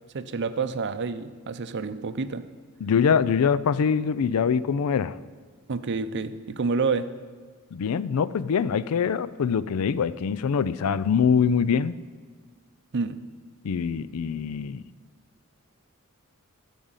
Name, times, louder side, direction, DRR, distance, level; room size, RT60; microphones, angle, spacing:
voice 1, 0.1-2.5 5.7-7.1 12.9-13.2, right 4 dB, 55° right, 12 dB, 0.6 m, -28 dB
voice 2, 2.8-5.2 7.7-11.9 13.6-14.8, left 6 dB, 80° left, 17 dB, 0.4 m, -24 dB
12.5 x 5.2 x 8.9 m, 1.5 s
head